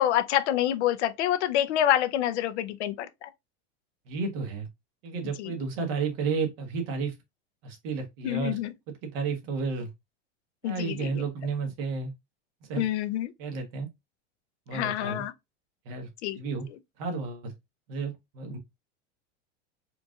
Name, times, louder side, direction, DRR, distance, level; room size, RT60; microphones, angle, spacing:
voice 1, 0.0-3.3 5.4-5.5 8.2-8.7 10.6-11.2 12.8-13.3 14.7-15.3 16.2-16.4, left 12 dB, 80° left, 0.7 m, -27 dB
voice 2, 4.1-4.7 5.0-7.1 7.6-8.6 9.0-9.9 10.6-12.1 12.7-12.8 13.4-13.9 14.7-15.2 15.8-16.1 16.4-16.7 17.0-17.5 17.9-18.6, right 4 dB, 55° right, 1.4 m, -32 dB
4.5 x 2.6 x 2.3 m
supercardioid pair, 140°, 34 cm